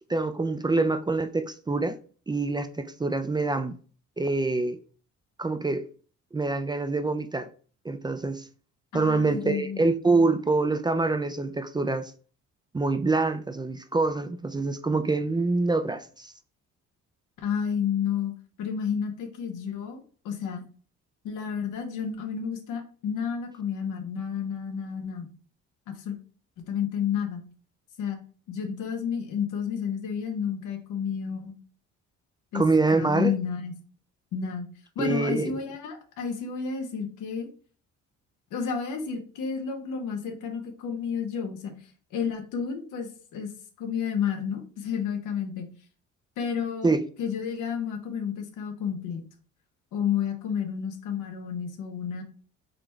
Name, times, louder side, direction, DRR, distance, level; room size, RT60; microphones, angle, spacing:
voice 1, 0.1-2.0 2.3-3.7 4.2-4.8 5.4-5.9 6.3-7.5 7.8-8.5 8.9-12.1 12.7-16.3 32.5-33.3 35.0-35.6 46.8-47.0, right 3 dB, 15° right, 0.3 m, -25 dB
voice 2, 8.9-9.8 17.4-18.3 18.6-20.6 21.2-25.3 25.9-26.2 26.6-27.5 28.0-28.2 28.5-31.5 32.5-32.6 32.9-33.7 34.3-34.7 35.0-37.5 38.5-41.7 42.1-43.5 43.8-45.7 46.4-46.9 47.2-49.2 49.9-52.2, left 7 dB, 90° left, 0.9 m, -31 dB
3.9 x 3.0 x 3.3 m
cardioid pair, 90°, 30 cm